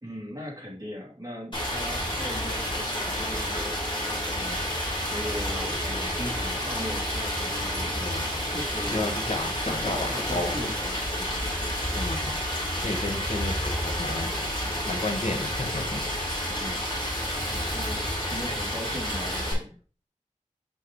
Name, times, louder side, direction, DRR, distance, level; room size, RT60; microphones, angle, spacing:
voice 1, 0.0-4.8 5.1-8.0 8.5-9.2 9.6-11.6 16.5-17.1 17.4-19.8, left 1 dB, 30° right, -3 dB, 2.8 m, -39 dB
Stream, 1.5-19.5, equal, 40° left, 3.6 m, -30 dB
voice 2, 7.9-8.4 8.9-10.7 11.9-12.3 12.8-14.3 14.6-16.0, left 2 dB, 55° left, 2 dB, 1.4 m, -32 dB
7.5 x 5.2 x 3.2 m, 0.41 s
wide cardioid pair, 60°, 13 cm